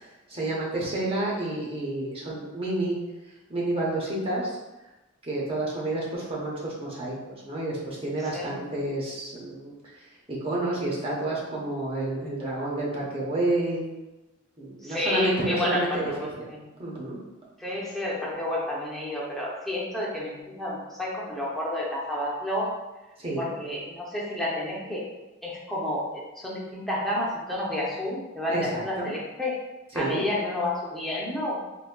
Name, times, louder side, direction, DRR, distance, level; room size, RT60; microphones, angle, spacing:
voice 1, 0.0-3.0 3.5-4.5 5.2-9.7 10.3-13.9 14.6-16.1 16.4-16.5 16.8-17.2 23.2-23.5 28.5-29.1 29.9-30.2, right 2 dB, 30° right, -5 dB, 0.9 m, -29 dB
voice 2, 8.2-8.5 14.8-16.6 17.6-22.7 23.4-25.1 25.4-29.6 29.9-31.6, left 1 dB, ahead, -6 dB, 0.7 m, -30 dB
3.9 x 2.8 x 2.2 m, 1.1 s
head